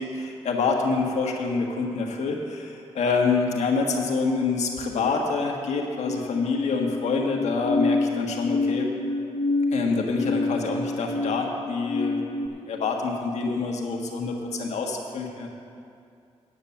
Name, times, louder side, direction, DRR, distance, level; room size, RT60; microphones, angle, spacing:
voice 1, 0.0-8.9 9.7-15.5, left 4 dB, 85° left, 1 dB, 1.5 m, -26 dB
sound 1, 6.0-12.5, left 3 dB, 60° left, 0.8 m, -28 dB
9.4 x 8.6 x 6.9 m, 2.4 s
cardioid pair, 90°, 11 cm